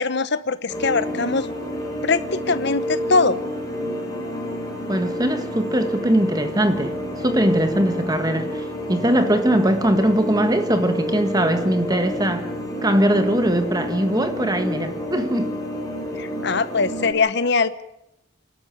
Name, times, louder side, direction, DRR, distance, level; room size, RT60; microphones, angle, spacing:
voice 1, 0.0-1.5 2.0-3.4 16.2-17.7, left 4 dB, 55° left, 1.0 m, -21 dB
sound 1, 0.7-17.1, equal, 15° left, 4.4 m, -29 dB
voice 2, 4.9-12.5 12.8-15.5, right 1 dB, 20° right, 1.5 m, -21 dB
27.0 x 12.5 x 9.2 m
head